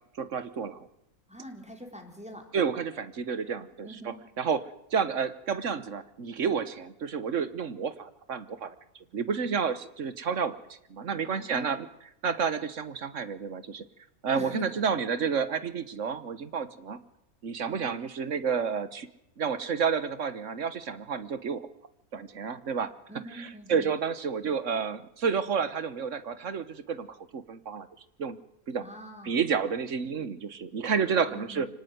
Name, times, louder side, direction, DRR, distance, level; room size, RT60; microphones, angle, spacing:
voice 1, 0.2-0.8 2.5-8.7 9.1-10.6 10.9-11.9 12.2-13.8 14.2-17.0 17.4-19.1 19.4-21.7 22.1-22.9 23.4-27.9 28.2-28.4 28.7-28.8 29.2-31.7, right 6 dB, 60° right, 14 dB, 1.5 m, -30 dB
voice 2, 1.3-2.5 3.8-4.2 11.2-11.8 14.3-14.8 17.6-18.0 23.1-23.9 28.7-29.4 31.3-31.6, right 1 dB, 5° right, 2 dB, 3.9 m, -43 dB
24.5 x 18.0 x 9.4 m, 0.81 s
omnidirectional pair, 1.5 m